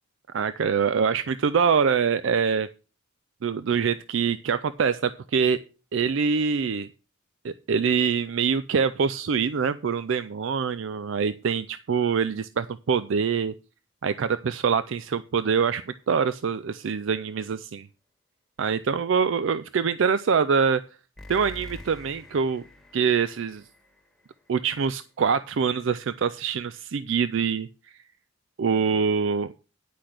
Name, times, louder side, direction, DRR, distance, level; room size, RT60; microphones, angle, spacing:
voice 1, 0.3-2.7 3.4-5.6 5.9-6.9 7.4-13.5 14.0-17.9 18.6-20.8 21.3-22.6 22.9-23.6 24.5-27.7 28.6-29.5, right 6 dB, 65° right, 15 dB, 0.4 m, -24 dB
sound 1, 16.0-16.4 21.2-24.8, left 1 dB, ahead, 1.7 m, -47 dB
10.0 x 5.9 x 6.4 m, 0.34 s
head